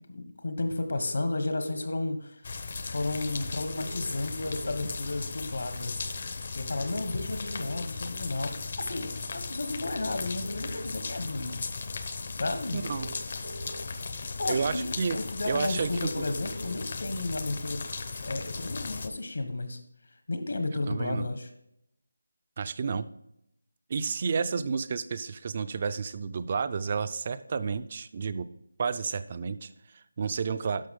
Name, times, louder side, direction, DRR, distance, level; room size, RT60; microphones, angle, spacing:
voice 1, 0.0-2.4 2.8-6.1 6.5-11.6 12.3-12.8 14.4-17.8 18.2-21.5, left 2 dB, 65° left, 7 dB, 1.4 m, -33 dB
sound 1, 0.9-1.9 3.8-4.9 6.8-7.8 9.8-10.8 12.8-13.8 15.8-16.8, right 1 dB, 85° right, 0.5 m, -44 dB
sound 2, 2.4-19.1, left 4 dB, 40° left, 0.7 m, -37 dB
voice 2, 12.7-13.1 14.5-15.2 15.5-16.1 20.9-21.3 22.6-23.1 23.9-28.5 28.8-30.9, right 5 dB, 25° right, 14 dB, 0.4 m, -31 dB
11.5 x 6.3 x 3.7 m, 0.79 s
figure-of-eight pair, 175°, 0 cm